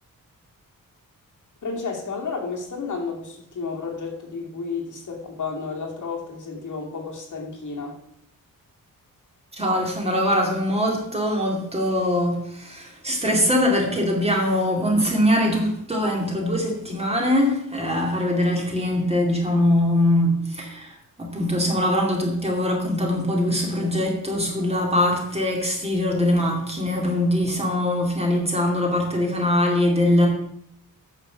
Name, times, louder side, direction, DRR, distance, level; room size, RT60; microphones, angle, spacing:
voice 1, 1.6-8.0, left 4 dB, 60° left, 0 dB, 2.7 m, -32 dB
voice 2, 9.5-30.3, left 1 dB, 20° right, 0 dB, 2.5 m, -22 dB
9.6 x 6.4 x 6.9 m, 0.71 s
wide cardioid pair, 155°, 34 cm